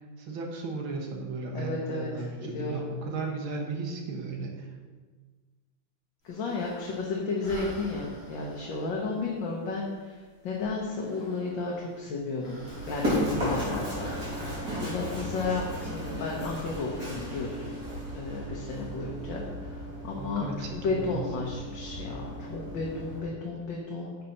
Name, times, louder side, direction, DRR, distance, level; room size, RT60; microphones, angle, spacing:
voice 1, 0.2-4.7 20.2-21.2, right 3 dB, 80° right, 1 dB, 2.1 m, -35 dB
voice 2, 1.5-2.1 2.4-2.9 6.2-14.1 14.4-17.8 18.1-20.4 20.7-24.2, left 3 dB, 70° left, -3 dB, 1.9 m, -33 dB
sound 1, 6.2-16.8, left 1 dB, 40° left, 3.3 m, -50 dB
Run, 12.7-23.2, equal, 45° right, 3.7 m, -35 dB
10.5 x 6.6 x 4.2 m, 1.4 s
omnidirectional pair, 2.2 m